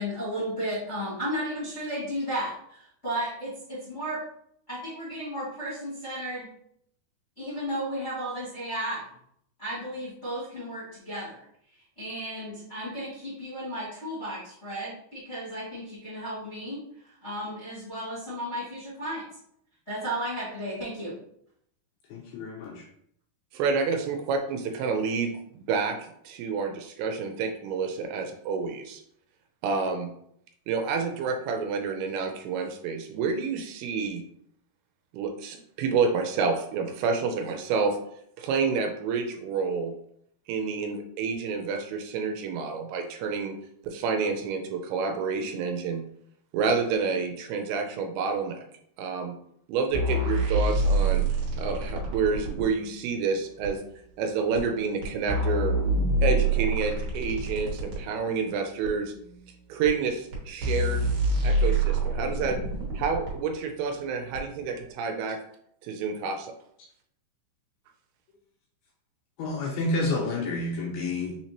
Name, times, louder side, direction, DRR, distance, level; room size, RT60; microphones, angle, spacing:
voice 1, 0.0-4.2 4.7-6.5 7.4-9.0 9.6-11.4 11.7-19.2 19.9-21.1, equal, 40° left, -11 dB, 0.9 m, -34 dB
voice 2, 22.1-22.9 69.4-71.4, left 2 dB, 85° left, -1 dB, 2.2 m, -29 dB
voice 3, 23.5-26.0 26.2-29.0 29.6-30.1 30.7-34.2 35.1-38.0 38.4-40.0 40.5-43.6 43.8-46.1 46.5-48.7 49.0-49.4 49.7-51.3 51.5-53.8 54.2-55.7 56.2-59.1 59.7-61.1 61.4-62.6 63.0-65.4 65.8-66.5, right 5 dB, 80° right, 5 dB, 2.5 m, -29 dB
sound 1, 49.9-52.7 53.6-53.7 54.5-54.6 55.0-58.0 58.8-58.9 59.8-59.9 60.3-60.4 60.6-63.3 64.3-64.4, right 2 dB, 65° right, 2.1 m, -26 dB
6.2 x 2.9 x 2.9 m, 0.69 s
omnidirectional pair, 4.7 m